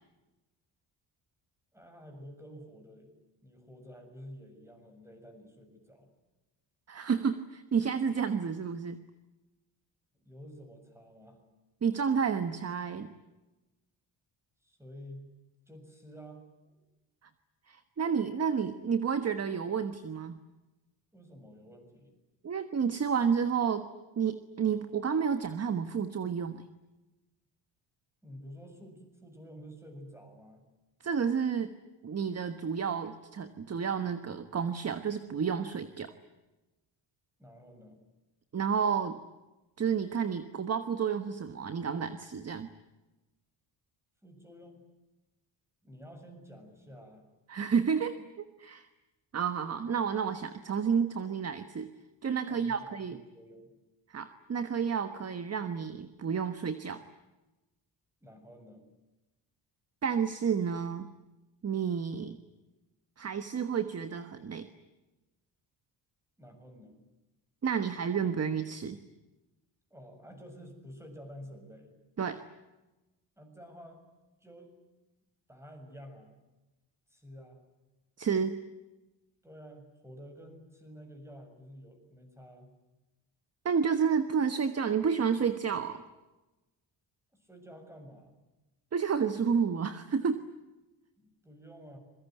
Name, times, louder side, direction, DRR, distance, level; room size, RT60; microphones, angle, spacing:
voice 1, 1.7-3.1 3.4-6.1 10.1-11.4 14.6-15.3 15.7-16.7 21.1-22.1 28.2-30.6 37.4-38.0 44.2-44.8 45.8-47.2 52.5-53.7 58.2-58.8 66.4-67.0 69.9-71.9 73.4-74.0 74.4-74.8 75.5-76.3 77.1-77.6 79.4-82.7 87.3-88.3 91.2-92.0, equal, 5° right, 5 dB, 7.1 m, -50 dB
voice 2, 6.9-9.0 11.8-13.1 17.7-20.4 22.4-23.9 24.2-26.6 31.0-31.7 32.0-36.1 38.5-39.2 39.8-42.7 47.5-48.9 49.3-51.9 52.2-53.2 54.1-57.0 60.0-61.1 61.6-62.4 63.2-64.7 67.6-69.0 72.2-72.4 78.2-78.6 83.6-86.0 88.9-90.5, right 6 dB, 35° right, 10 dB, 1.4 m, -30 dB
25.5 x 23.0 x 9.3 m, 1.1 s
cardioid pair, 145°, 45 cm